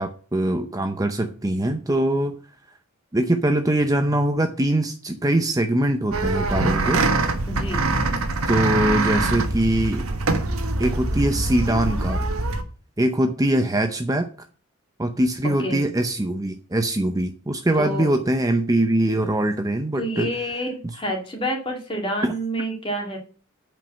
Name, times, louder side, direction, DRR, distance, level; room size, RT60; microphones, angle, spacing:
voice 1, 0.0-2.4 3.1-7.1 8.4-10.1 10.8-12.2 13.0-14.3 15.0-20.3 22.2-22.3, right 1 dB, 15° right, 6 dB, 0.7 m, -22 dB
sound 1, 6.1-12.6, right 2 dB, 80° right, 1.4 m, -23 dB
voice 2, 7.5-7.8 15.6-15.8 17.8-18.1 20.0-23.2, equal, 25° left, 2 dB, 2.4 m, -28 dB
8.8 x 5.3 x 7.3 m, 0.40 s
head